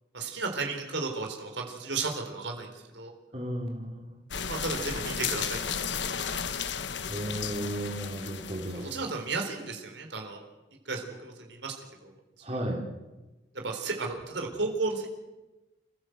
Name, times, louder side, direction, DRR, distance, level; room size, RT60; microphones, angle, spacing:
voice 1, 0.1-3.1 4.5-6.0 8.7-10.4 10.9-11.7 12.0-12.1 13.6-15.1, right 3 dB, 75° right, 2 dB, 4.0 m, -34 dB
voice 2, 3.3-4.2 7.1-8.9 12.4-12.8, right 1 dB, 35° right, 0 dB, 3.8 m, -34 dB
sound 1, 4.3-9.2, left 7 dB, 75° left, 1.2 m, -34 dB
28.5 x 16.0 x 8.0 m, 1.1 s
head